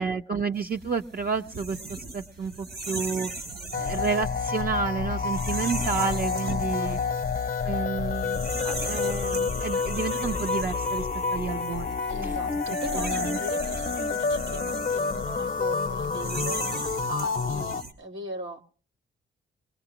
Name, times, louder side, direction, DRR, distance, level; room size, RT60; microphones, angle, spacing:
voice 1, 0.0-3.3 3.8-7.0 7.6-12.0 12.9-13.4, right 5 dB, 50° right, 4 dB, 0.7 m, -30 dB
sound 1, 0.6-17.9, right 2 dB, 65° right, 3.4 m, -38 dB
sound 2, 3.7-17.8, left 5 dB, 45° left, 0.7 m, -29 dB
voice 2, 6.4-7.0 12.1-18.6, right 1 dB, 85° right, 4 dB, 1.5 m, -39 dB
22.0 x 19.5 x 2.9 m, 0.42 s
cardioid pair, 95°, 19 cm